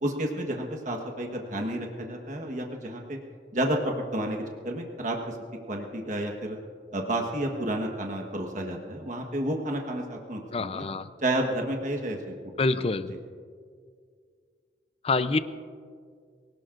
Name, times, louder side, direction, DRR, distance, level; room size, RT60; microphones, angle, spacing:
voice 1, 0.0-3.2 3.5-5.4 5.7-6.6 6.9-10.8 11.2-12.3 12.7-12.8, right 1 dB, 45° right, 2 dB, 1.3 m, -31 dB
voice 2, 10.5-11.1 12.6-13.1 15.0-15.4, left 3 dB, 35° left, 12 dB, 0.6 m, -26 dB
24.0 x 18.0 x 2.6 m, 2.1 s
head